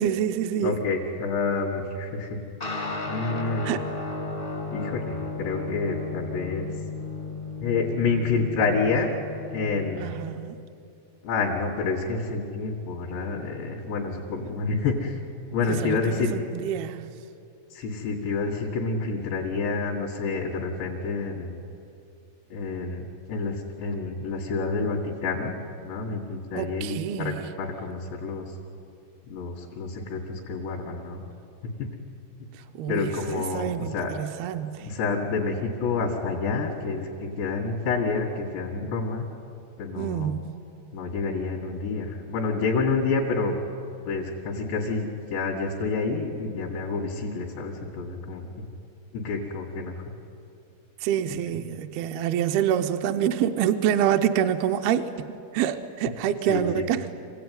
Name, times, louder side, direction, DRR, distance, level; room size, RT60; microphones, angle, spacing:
voice 1, 0.0-0.8 3.6-3.8 10.0-10.6 15.8-17.1 26.6-27.5 32.8-34.9 40.0-40.5 51.0-55.3 55.5-57.1, right 10 dB, 75° right, 7 dB, 2.4 m, -26 dB
voice 2, 0.6-2.3 3.0-3.6 4.7-6.7 7.6-9.2 9.5-10.0 11.2-15.2 15.5-16.3 17.7-21.6 22.5-25.6 25.8-28.5 29.3-31.2 31.8-32.0 32.9-34.1 34.8-39.3 39.8-40.3 40.9-43.5 44.1-48.4 49.1-49.9 51.3-51.4 56.4-56.9, left 4 dB, 90° left, -3 dB, 4.2 m, -28 dB
sound 1, 2.6-10.4, left 3 dB, 45° left, 0.6 m, -34 dB
25.5 x 16.0 x 9.4 m, 2.7 s
omnidirectional pair, 4.9 m